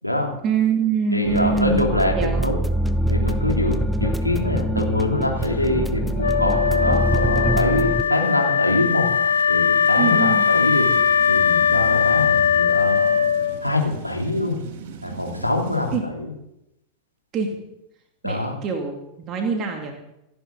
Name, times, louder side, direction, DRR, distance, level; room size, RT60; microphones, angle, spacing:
voice 1, 0.4-2.5 10.0-10.5 15.9-16.1 17.3-17.6 18.2-19.9, right 5 dB, 30° right, 2 dB, 2.6 m, -24 dB
voice 2, 1.1-2.6 3.1-9.1 9.5-10.9 11.3-13.2 13.6-14.6 15.0-16.3 18.2-18.5, left 2 dB, 90° left, 0 dB, 3.2 m, -24 dB
sound 1, 1.3-8.0, equal, ahead, 0.8 m, -24 dB
Wind instrument woodwind instrument, 6.2-13.8, left 7 dB, 75° left, 1.0 m, -20 dB
sound 2, 9.1-16.0, right 7 dB, 50° right, 1.7 m, -39 dB
27.5 x 10.5 x 4.0 m, 0.87 s
figure-of-eight pair, 90°, 0 cm